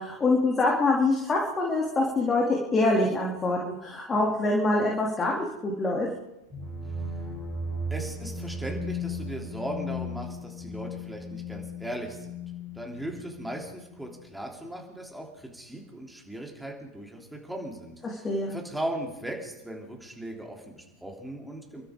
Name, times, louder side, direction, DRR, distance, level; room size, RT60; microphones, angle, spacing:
voice 1, 0.0-6.1 18.2-18.6, left 2 dB, 20° left, -2 dB, 2.7 m, -25 dB
sound 1, 6.5-14.2, left 2 dB, 35° right, 4.7 m, -36 dB
voice 2, 7.9-12.3 12.7-21.8, right 1 dB, 5° right, 0 dB, 3.2 m, -38 dB
28.5 x 12.5 x 3.8 m, 0.93 s
figure-of-eight pair, 90°, 0 cm